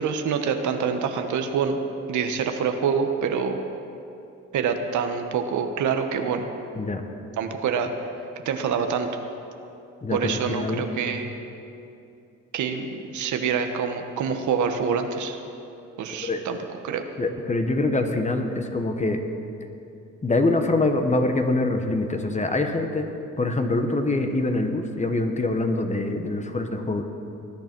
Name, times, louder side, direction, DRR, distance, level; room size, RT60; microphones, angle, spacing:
voice 1, 0.0-1.8 2.1-3.6 4.5-6.5 7.4-7.9 8.4-9.1 10.1-11.3 12.5-15.4 16.0-16.6 16.8-17.1, right 6 dB, 75° right, 6 dB, 1.2 m, -26 dB
voice 2, 10.0-10.8 16.2-16.4 17.2-19.2 20.2-23.1 23.4-27.0, left 2 dB, 25° left, 6 dB, 1.2 m, -24 dB
20.0 x 10.5 x 4.6 m, 2.7 s
cardioid pair, 90°, 30 cm